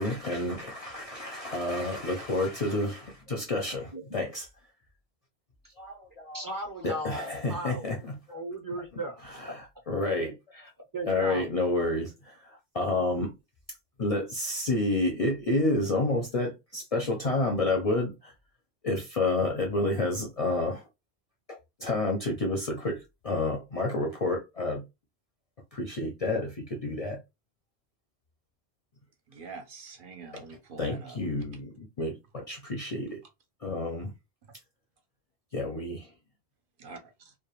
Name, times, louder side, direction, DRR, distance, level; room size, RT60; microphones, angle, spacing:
voice 1, 0.0-4.5 5.8-6.5 6.8-8.4 9.2-10.4 11.1-13.3 14.0-18.3 18.8-20.8 21.5-24.8 25.7-27.2 30.3-30.4 30.8-33.2 33.6-34.1 35.5-36.1, left 2 dB, 50° left, 0.4 m, -30 dB
voice 2, 6.3-7.9 8.3-9.2 10.5-11.5, right 1 dB, 25° right, 0.4 m, -36 dB
voice 3, 29.3-31.2 36.8-37.3, right 4 dB, 60° right, 0.7 m, -45 dB
2.2 x 2.2 x 2.9 m
omnidirectional pair, 1.1 m